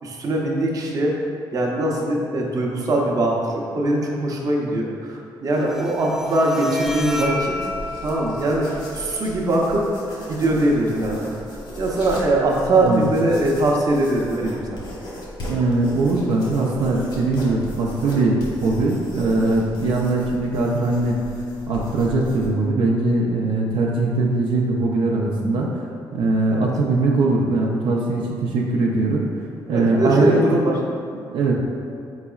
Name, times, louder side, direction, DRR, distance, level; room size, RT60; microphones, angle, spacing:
voice 1, 0.0-1.2 1.5-7.6 8.0-8.7 8.9-9.9 10.3-11.3 11.8-14.8 26.5-26.7 29.7-30.8, right 1 dB, 45° right, -1 dB, 0.7 m, -21 dB
Bowed string instrument, 5.5-12.5, equal, 5° right, 0.3 m, -33 dB
sound 1, 6.8-22.5, left 1 dB, 60° left, 1.2 m, -37 dB
voice 2, 15.5-21.2 21.7-25.7 26.1-29.3 29.7-30.7 31.3-31.5, right 2 dB, 80° right, -2 dB, 0.5 m, -21 dB
4.7 x 4.0 x 2.3 m, 2.4 s
cardioid pair, 105°, 9 cm